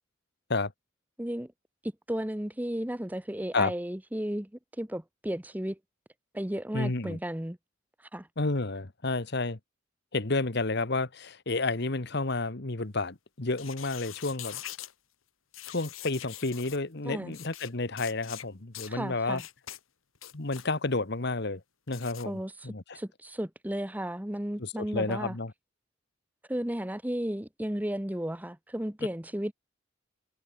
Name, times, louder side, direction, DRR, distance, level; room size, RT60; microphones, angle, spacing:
voice 1, 1.2-1.5 1.8-4.5 4.8-5.8 6.3-7.6 8.1-8.3 17.0-17.3 18.9-19.4 22.2-25.4 26.5-29.5, right 1 dB, 10° right, 0.9 m, -34 dB
voice 2, 6.7-7.2 8.4-9.6 10.1-14.6 15.7-19.4 20.3-21.6 21.9-23.0 24.6-25.5, left 3 dB, 55° left, 1.4 m, -31 dB
sound 1, 13.5-14.9 15.5-16.8 17.3-17.7 18.0-18.4 18.7-18.9 19.4-19.8 20.1-20.7 21.9-22.2, left 12 dB, 85° left, 2.0 m, -43 dB
head